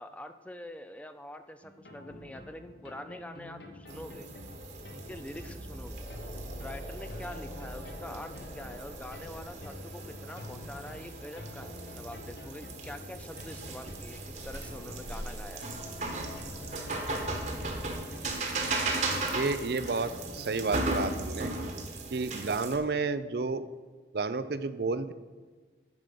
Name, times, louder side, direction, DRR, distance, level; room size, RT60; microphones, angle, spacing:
voice 1, 0.0-4.3 4.9-6.0 6.6-15.7, left 1 dB, 10° left, 9 dB, 0.4 m, -45 dB
sound 1, 1.6-21.3, left 1 dB, 70° left, 1.2 m, -46 dB
sound 2, 3.9-22.8, right 2 dB, 40° right, 1.3 m, -37 dB
sound 3, 5.9-18.3, equal, 30° left, 1.8 m, -54 dB
voice 2, 19.3-21.5 22.1-23.6 24.1-25.1, right 3 dB, 65° right, 13 dB, 0.5 m, -31 dB
9.6 x 5.0 x 6.8 m, 1.4 s
head